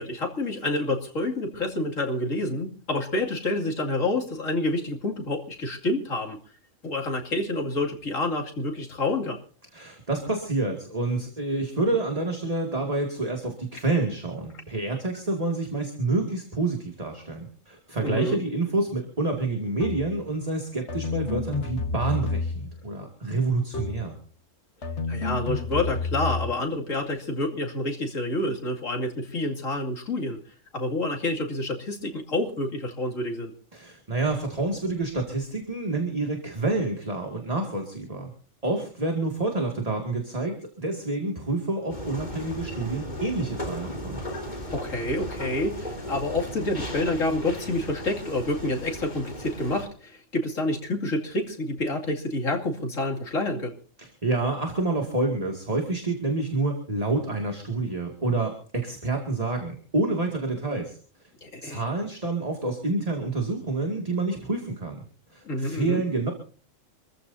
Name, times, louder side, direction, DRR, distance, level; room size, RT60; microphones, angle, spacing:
voice 1, 0.0-6.4 6.8-9.4 18.0-18.4 25.1-30.4 30.7-33.5 44.7-53.7 61.4-61.8 65.4-66.0, left 2 dB, 75° left, 1 dB, 2.9 m, -28 dB
voice 2, 9.7-24.2 33.7-38.3 38.6-44.2 54.0-61.0 61.6-65.0 65.3-66.3, right 2 dB, 30° right, 2 dB, 2.4 m, -28 dB
sound 1, 19.8-20.2 20.9-22.8 23.7-24.1 24.8-26.5, left 4 dB, 60° left, 1.9 m, -30 dB
sound 2, 41.9-49.9, equal, 35° left, 3.4 m, -36 dB
27.5 x 14.0 x 2.7 m, 0.42 s
omnidirectional pair, 1.4 m